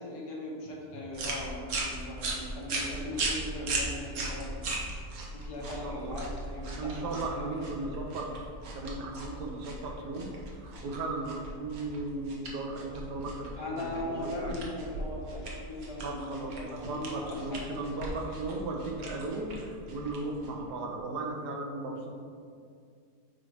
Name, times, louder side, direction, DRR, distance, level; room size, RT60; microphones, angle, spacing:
voice 1, 0.0-4.7 5.3-7.5 13.6-18.4, left 1 dB, 85° left, -2 dB, 1.7 m, -39 dB
sound 1, 1.1-20.7, right 2 dB, 65° right, 1.4 m, -38 dB
voice 2, 5.6-6.1 6.8-8.3 8.7-10.3 10.6-14.5 16.0-22.1, right 2 dB, 85° right, 1 dB, 1.5 m, -36 dB
8.2 x 3.2 x 4.9 m, 2.3 s
omnidirectional pair, 1.7 m